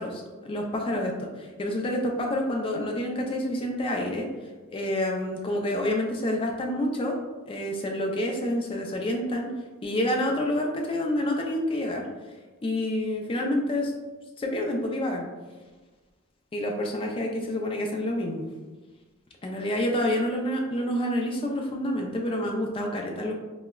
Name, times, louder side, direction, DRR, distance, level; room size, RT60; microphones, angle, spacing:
voice 1, 0.0-4.3 4.7-7.2 7.5-9.5 9.8-12.1 12.6-13.9 14.4-15.3 16.5-18.5 19.4-23.3, left 1 dB, 25° left, 1 dB, 0.3 m, -28 dB
4.6 x 2.0 x 2.2 m, 1.3 s
head